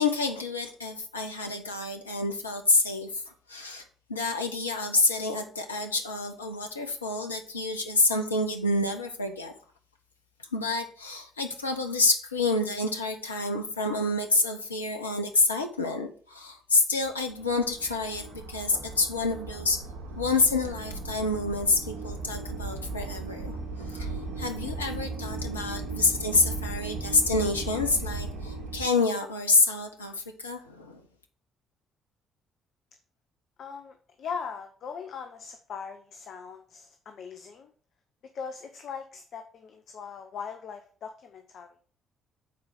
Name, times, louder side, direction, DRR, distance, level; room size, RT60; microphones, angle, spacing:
voice 1, 0.0-3.2 3.5-3.8 4.1-9.5 10.5-19.8 20.2-23.6 23.9-31.0, left 3 dB, 85° left, 4 dB, 0.8 m, -28 dB
sound 1, 16.9-28.8, right 3 dB, 65° right, 1.4 m, -37 dB
voice 2, 33.6-37.7 38.3-41.7, left 6 dB, 55° left, 7 dB, 0.8 m, -40 dB
7.2 x 4.7 x 6.3 m, 0.44 s
figure-of-eight pair, 45°, 0 cm